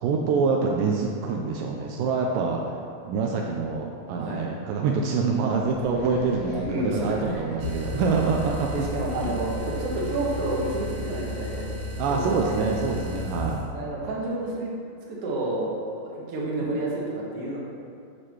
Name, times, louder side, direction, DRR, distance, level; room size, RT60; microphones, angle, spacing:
voice 1, 0.0-2.8 3.0-8.7 9.2-9.3 12.0-13.6, right 4 dB, 80° right, 0 dB, 2.3 m, -26 dB
sound 1, 5.6-11.7, left 4 dB, 85° left, 2.4 m, -41 dB
voice 2, 6.6-7.4 8.7-11.7 12.1-12.6 13.7-14.7 15.1-17.6, right 2 dB, 50° right, -5 dB, 2.1 m, -30 dB
sound 2, 7.6-13.7, left 1 dB, 65° right, 2.6 m, -34 dB
8.6 x 5.0 x 6.2 m, 2.4 s
omnidirectional pair, 4.2 m